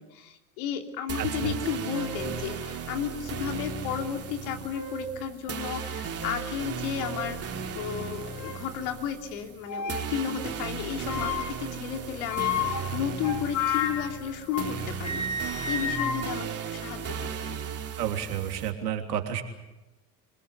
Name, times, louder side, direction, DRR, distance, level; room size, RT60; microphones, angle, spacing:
voice 1, 0.0-7.4 7.7-17.6, left 8 dB, 65° left, 5 dB, 3.2 m, -33 dB
sound 1, 1.1-18.7, right 6 dB, 30° right, 3.1 m, -36 dB
voice 2, 1.2-1.5 18.0-19.4, right 10 dB, 90° right, 4 dB, 3.3 m, -31 dB
sound 2, 1.5-1.6 1.9-2.3 3.1-3.2 4.4-5.2 5.6-5.8 6.2-6.4 7.0-7.3 7.9-8.7 9.7-10.1 11.1-11.7 12.3-14.8 15.0-17.3, left 5 dB, 40° left, 3.8 m, -33 dB
26.0 x 19.5 x 8.3 m, 1.0 s
hypercardioid pair, 100°, 47 cm